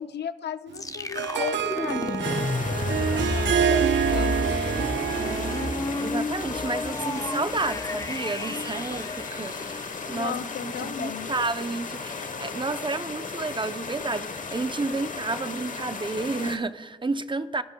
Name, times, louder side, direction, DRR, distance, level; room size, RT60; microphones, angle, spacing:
voice 1, 0.0-4.5 10.1-11.3, left 9 dB, 65° left, 0.6 m, -35 dB
sound 1, 0.7-10.6, left 3 dB, 20° left, 0.6 m, -31 dB
Harp, 0.8-6.1, right 9 dB, 80° right, 0.5 m, -27 dB
sound 2, 2.2-16.6, left 4 dB, 45° left, 1.0 m, -36 dB
voice 2, 5.2-5.6 6.0-17.6, right 3 dB, 25° right, 0.6 m, -31 dB
22.5 x 15.5 x 2.3 m
cardioid pair, 70°, 18 cm